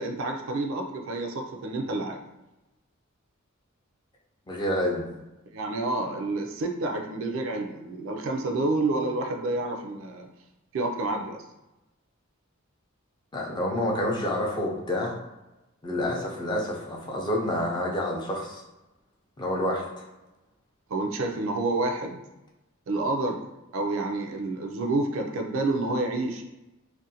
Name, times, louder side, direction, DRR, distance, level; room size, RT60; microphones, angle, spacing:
voice 1, 0.0-2.2 5.5-10.3 10.7-11.4 20.9-22.2 22.9-23.4 23.7-26.4, right 2 dB, 70° right, 3 dB, 0.4 m, -29 dB
voice 2, 4.5-5.1 13.3-15.1 15.8-18.6 19.4-19.8, left 1 dB, 20° left, -2 dB, 0.4 m, -28 dB
2.5 x 2.1 x 2.7 m, 1.0 s
head